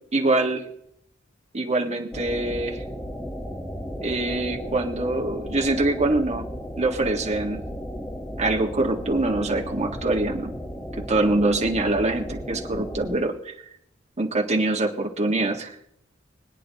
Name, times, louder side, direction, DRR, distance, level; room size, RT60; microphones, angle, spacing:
voice 1, 0.1-0.6 1.5-2.8 4.0-6.4 6.8-7.6 8.4-10.5 10.9-13.5 14.2-15.7, right 2 dB, 35° right, 1 dB, 1.6 m, -24 dB
sound 1, 2.1-13.2, equal, 10° left, 1.2 m, -35 dB
25.0 x 9.5 x 2.9 m, 0.76 s
head